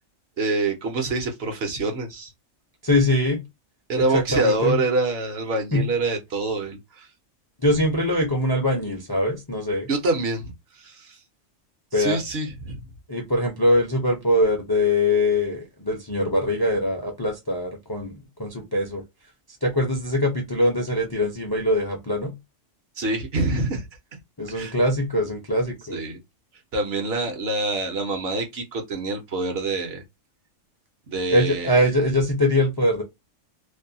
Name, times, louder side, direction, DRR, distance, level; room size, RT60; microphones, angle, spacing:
voice 1, 0.4-2.3 3.9-7.1 9.9-11.2 11.9-12.8 23.0-23.9 24.5-24.7 25.9-26.2 26.7-30.0 31.1-31.8, right 2 dB, 60° right, 0.8 m, -26 dB
voice 2, 2.8-3.4 4.1-4.8 5.7-5.8 7.6-9.9 11.9-12.2 13.1-18.1 18.4-19.0 19.6-22.3 24.4-26.0 31.3-33.0, left 1 dB, 35° left, 0.4 m, -22 dB
2.6 x 2.1 x 2.6 m
omnidirectional pair, 1.3 m